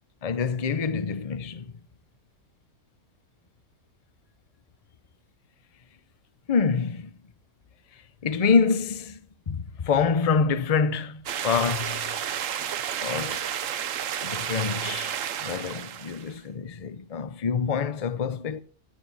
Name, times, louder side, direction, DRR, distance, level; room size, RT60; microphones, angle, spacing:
voice 1, 0.2-1.7 6.5-7.1 8.2-9.2 9.5-12.3 13.0-13.5 14.2-18.6, left 5 dB, 35° left, 0.6 m, -26 dB
sound 1, 11.3-16.3, right 9 dB, 65° right, 1.1 m, -31 dB
23.0 x 8.2 x 4.1 m
omnidirectional pair, 1.5 m